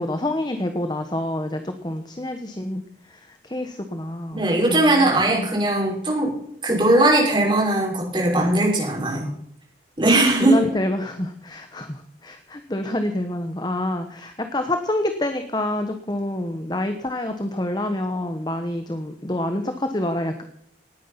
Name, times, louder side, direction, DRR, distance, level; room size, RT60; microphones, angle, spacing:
voice 1, 0.0-2.8 3.1-5.5 10.4-20.4, left 1 dB, 25° left, 7 dB, 1.1 m, -27 dB
voice 2, 4.3-6.3 6.6-9.3 10.0-10.6, right 1 dB, 25° right, -2 dB, 5.9 m, -19 dB
18.5 x 9.6 x 5.8 m, 0.68 s
head